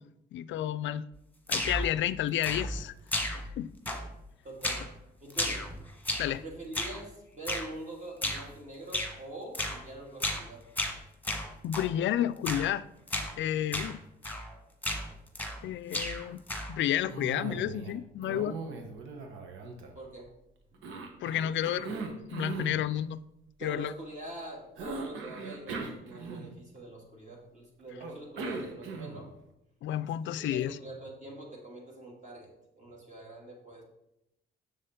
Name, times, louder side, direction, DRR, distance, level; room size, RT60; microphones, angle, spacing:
voice 1, 0.3-1.0 1.5-2.9 3.3-3.7 6.2-6.4 11.6-12.8 13.4-14.0 15.6-16.4 16.7-18.6 21.2-21.9 22.3-23.2 23.6-23.9 29.8-30.8, left 11 dB, 70° left, 0.4 m, -31 dB
sound 1, 1.5-1.9 2.4-2.8 3.1-3.6 3.9-4.2 4.6-4.9 5.3-6.4 6.7-7.0 7.5-7.7 8.2-8.5 8.9-9.2 9.5-9.8 10.2-10.5 10.8-11.9 12.4-12.7 13.1-13.3 13.7-13.9 14.2-14.5 14.8-15.6 15.9-16.8, left 1 dB, 10° left, 1.4 m, -33 dB
voice 2, 4.4-4.9 5.2-5.7 6.4-10.6 19.9-20.3 20.7-20.8 23.6-29.3 30.2-32.5 32.8-33.8, right 2 dB, 40° right, 2.7 m, -44 dB
Cough, 17.1-18.0 18.2-20.3 20.8-22.8 24.8-26.8 28.0-29.3, right 4 dB, 85° right, 1.2 m, -39 dB
7.1 x 6.7 x 3.8 m
cardioid pair, 90°, 20 cm